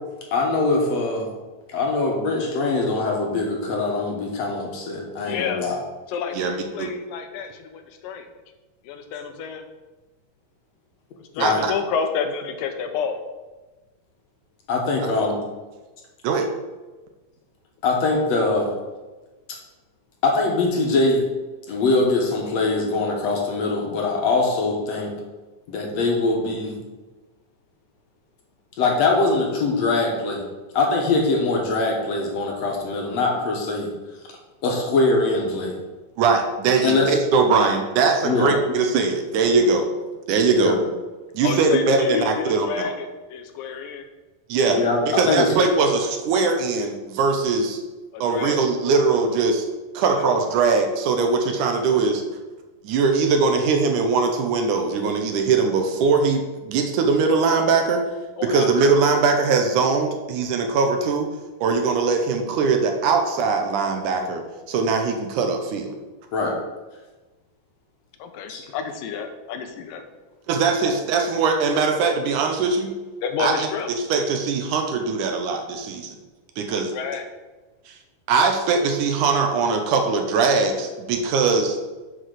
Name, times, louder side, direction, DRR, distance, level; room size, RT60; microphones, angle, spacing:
voice 1, 0.3-1.3 1.7-5.8 11.3-11.6 14.7-15.4 17.8-18.7 20.2-21.2 21.7-25.1 25.7-26.8 28.8-30.4 30.7-33.9 34.6-35.8 36.8-37.1 38.2-38.5 40.5-40.8 44.7-45.5 66.3-66.5 68.5-68.6, left 3 dB, 60° left, 0 dB, 2.2 m, -22 dB
voice 2, 5.3-5.6 6.1-8.3 8.8-9.6 11.3-13.2 41.4-44.1 45.6-45.7 48.1-48.7 50.1-50.2 58.4-58.7 68.2-70.0 73.2-73.9 76.7-77.3, left 6 dB, 85° left, 6 dB, 2.5 m, -29 dB
voice 3, 6.3-6.9 11.4-11.7 15.0-15.1 16.2-16.5 36.2-39.9 40.3-40.8 41.3-42.9 44.5-44.8 45.1-47.8 48.2-49.7 49.9-52.2 52.8-58.0 58.4-61.3 61.6-66.0 70.5-72.9 73.4-73.5 74.1-76.2 76.6-76.9 77.9-78.0 78.3-81.8, right 4 dB, 75° right, 4 dB, 2.2 m, -21 dB
7.9 x 4.8 x 6.5 m, 1.2 s
omnidirectional pair, 3.8 m